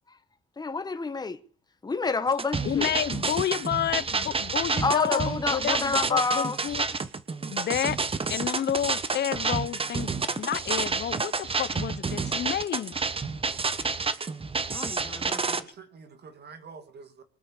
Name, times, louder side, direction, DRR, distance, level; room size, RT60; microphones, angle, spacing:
voice 1, 0.6-1.4 1.8-2.9 4.8-6.6 14.7-15.6, left 4 dB, 20° left, 1.2 m, -28 dB
sound 1, 2.3-15.6, right 4 dB, 30° right, 1.2 m, -29 dB
voice 2, 2.6-6.8 7.5-8.0 8.3-13.0, left 10 dB, 60° left, 0.9 m, -30 dB
voice 3, 15.0-17.2, right 5 dB, 55° right, 2.5 m, -47 dB
23.0 x 8.2 x 6.7 m
cardioid pair, 90°, 20 cm